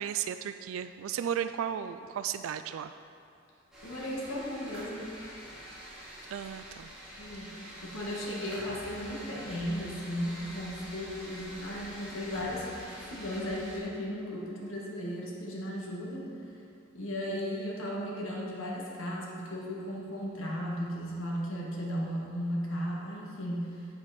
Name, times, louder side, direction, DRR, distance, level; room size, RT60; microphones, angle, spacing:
voice 1, 0.0-2.9 6.3-6.9, right 9 dB, 90° right, 10 dB, 0.3 m, -34 dB
sound 1, 3.7-13.8, equal, 5° right, 2.4 m, -46 dB
voice 2, 3.8-5.1 7.2-7.5 7.8-16.6 16.9-23.9, equal, 90° left, -3 dB, 1.8 m, -36 dB
8.5 x 7.9 x 4.2 m, 2.5 s
head